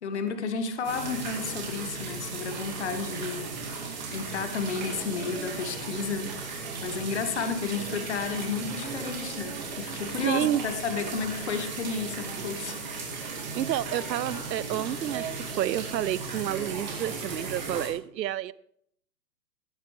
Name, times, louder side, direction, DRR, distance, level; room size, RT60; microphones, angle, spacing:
voice 1, 0.0-6.3 6.8-12.8, left 5 dB, 40° left, 8 dB, 1.3 m, -32 dB
sound 1, 0.8-17.9, right 4 dB, 25° right, 2.2 m, -36 dB
voice 2, 9.9-10.6 13.5-18.5, right 12 dB, 85° right, 20 dB, 0.6 m, -30 dB
18.0 x 10.5 x 3.2 m, 0.68 s
hypercardioid pair, 175°, 50 cm